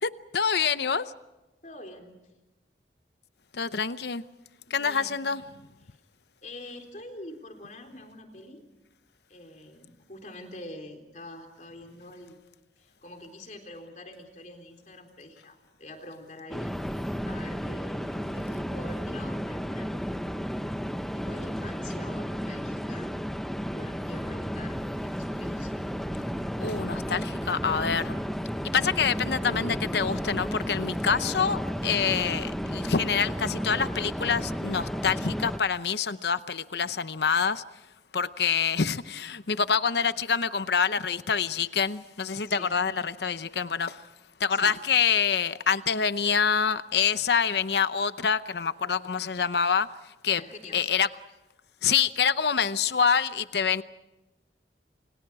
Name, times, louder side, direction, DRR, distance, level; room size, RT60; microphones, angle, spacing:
voice 1, 0.0-1.1 3.5-4.2 4.7-5.4 26.6-28.2 28.7-37.6 38.1-44.1 44.4-50.4 50.7-51.1 51.8-53.8, left 6 dB, 75° left, 0.8 m, -26 dB
voice 2, 1.6-2.2 4.7-5.2 5.8-6.0 6.4-8.6 9.3-12.4 12.8-16.8 17.3-20.1 21.1-23.2 23.7-25.7 42.5-42.7 44.5-44.7 50.4-50.9, left 1 dB, 45° left, 3.8 m, -45 dB
sound 1, 16.5-35.6, equal, ahead, 0.8 m, -33 dB
29.5 x 28.5 x 4.8 m
head